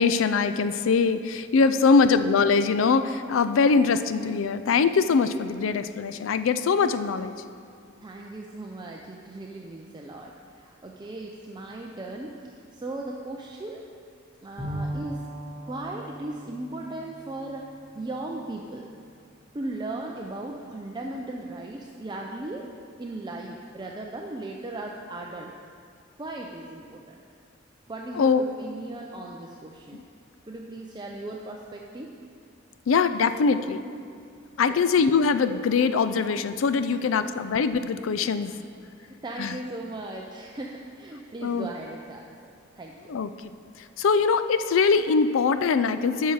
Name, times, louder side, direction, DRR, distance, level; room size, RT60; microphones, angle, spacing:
voice 1, 0.0-7.3 28.1-28.4 29.9-30.0 32.9-33.8 34.6-38.6 39.4-39.6 41.4-41.7 43.1-43.3 44.0-46.3, left 5 dB, 75° left, 12 dB, 0.4 m, -22 dB
voice 2, 8.0-13.8 14.4-15.2 15.6-17.7 17.9-18.9 19.5-22.7 23.0-25.5 26.2-27.2 27.9-30.0 30.4-32.1 34.7-34.8 37.0-37.2 38.2-38.3 39.0-43.1, right 2 dB, 20° right, 0 dB, 0.5 m, -37 dB
Bowed string instrument, 14.6-18.3, right 1 dB, 5° left, 2.3 m, -38 dB
13.0 x 5.6 x 4.7 m, 2.3 s
head